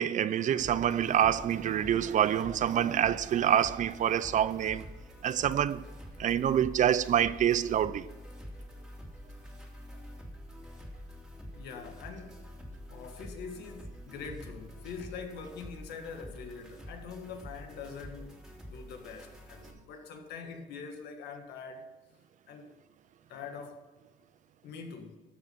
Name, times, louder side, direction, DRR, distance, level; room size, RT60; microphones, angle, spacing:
voice 1, 0.0-4.9 5.2-5.8 6.2-8.1, right 10 dB, 50° right, 0.5 m, -26 dB
sound 1, 0.6-19.7, equal, ahead, 2.6 m, -47 dB
voice 2, 11.5-12.5 12.9-18.4 18.6-21.9 22.5-22.7 23.3-23.8 24.6-25.2, left 5 dB, 75° left, 1.9 m, -44 dB
13.5 x 6.4 x 5.8 m
cardioid pair, 110°, 17 cm